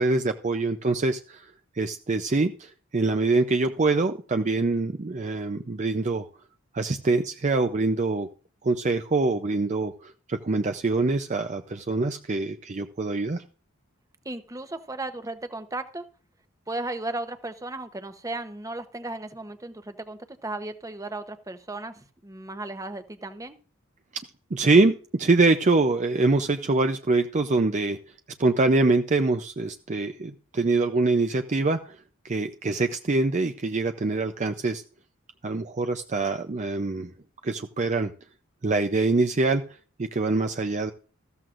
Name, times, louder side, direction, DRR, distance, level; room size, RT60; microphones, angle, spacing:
voice 1, 0.0-1.5 1.8-6.3 6.7-8.3 8.6-13.4 24.5-28.0 28.4-32.0 32.2-34.8 35.4-37.1 37.4-38.1 38.6-39.6 40.0-40.9, right 3 dB, 35° right, 7 dB, 0.5 m, -24 dB
voice 2, 14.2-16.0 16.7-23.6, right 2 dB, 15° right, 9 dB, 0.9 m, -35 dB
14.0 x 13.5 x 2.5 m, 0.39 s
head